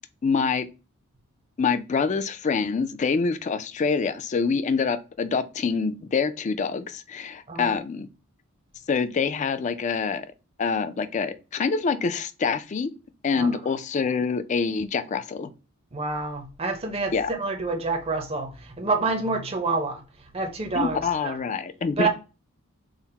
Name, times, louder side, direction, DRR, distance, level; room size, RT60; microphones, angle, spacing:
voice 1, 0.2-0.7 1.6-8.1 8.9-10.3 10.6-12.9 13.2-15.5 17.1-17.3 20.7-22.1, left 5 dB, 35° left, 0.3 m, -26 dB
voice 2, 7.5-7.8 13.4-13.5 15.9-20.0 20.3-21.4 22.0-22.1, right 3 dB, 25° right, 0.5 m, -28 dB
3.8 x 2.0 x 4.1 m
head